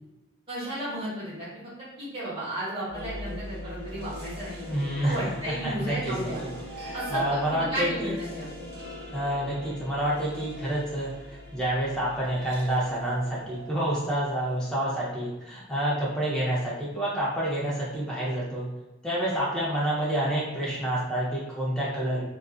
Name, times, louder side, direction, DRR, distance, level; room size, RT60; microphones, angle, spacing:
voice 1, 0.5-4.6 5.0-6.4 6.9-8.5, right 1 dB, 25° right, -8 dB, 1.0 m, -34 dB
sound 1, 2.8-15.0, equal, 50° right, 0.8 m, -41 dB
voice 2, 4.7-6.3 6.8-8.1 9.1-18.7 19.0-22.2, right 1 dB, 5° left, -8 dB, 0.7 m, -28 dB
2.5 x 2.4 x 2.4 m, 1.0 s
head